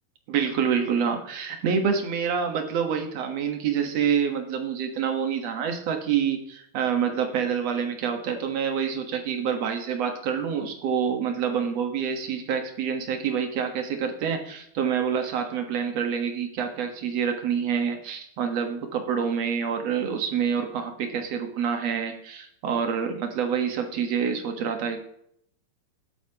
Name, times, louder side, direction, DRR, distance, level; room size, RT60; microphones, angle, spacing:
voice 1, 0.3-25.0, right 7 dB, 55° right, 5 dB, 2.0 m, -27 dB
19.0 x 8.3 x 2.9 m, 0.70 s
omnidirectional pair, 4.4 m